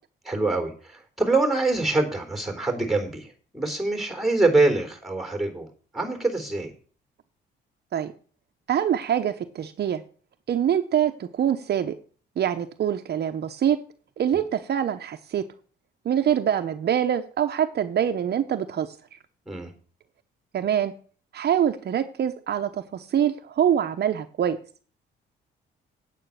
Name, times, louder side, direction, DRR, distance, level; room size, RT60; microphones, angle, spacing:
voice 1, 0.3-5.7 5.9-6.7 19.5-19.7, right 2 dB, ahead, 6 dB, 3.6 m, -25 dB
voice 2, 8.7-10.0 10.5-12.0 12.4-13.8 14.2-15.5 16.0-18.9 20.5-20.9 21.3-24.6, right 9 dB, 55° right, 7 dB, 0.9 m, -24 dB
8.9 x 8.5 x 6.6 m, 0.41 s
cardioid pair, 90°, 20 cm